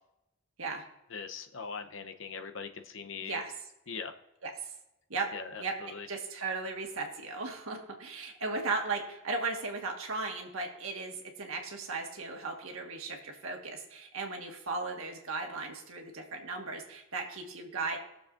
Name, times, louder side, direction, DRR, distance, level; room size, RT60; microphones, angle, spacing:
voice 1, 1.1-3.4 3.9-4.1 5.3-6.1, left 5 dB, 65° left, 7 dB, 0.7 m, -41 dB
voice 2, 3.2-3.5 4.4-4.7 5.1-5.3 5.6-5.7 6.1-18.0, right 3 dB, 85° right, 3 dB, 1.5 m, -36 dB
20.0 x 6.9 x 2.5 m, 0.88 s
head